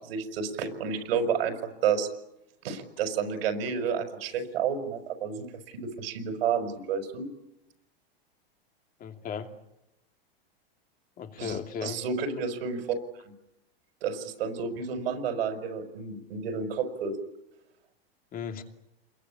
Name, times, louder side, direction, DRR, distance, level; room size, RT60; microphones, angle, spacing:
voice 1, 0.0-1.6 1.8-2.1 2.6-5.4 5.7-7.3 11.4-13.0 14.0-17.2, right 6 dB, 75° right, 7 dB, 5.4 m, -30 dB
voice 2, 9.0-9.5 11.2-12.0 18.3-18.6, left 7 dB, 30° left, 6 dB, 2.7 m, -36 dB
28.5 x 22.0 x 8.6 m, 0.88 s
supercardioid pair, 135°, 30 cm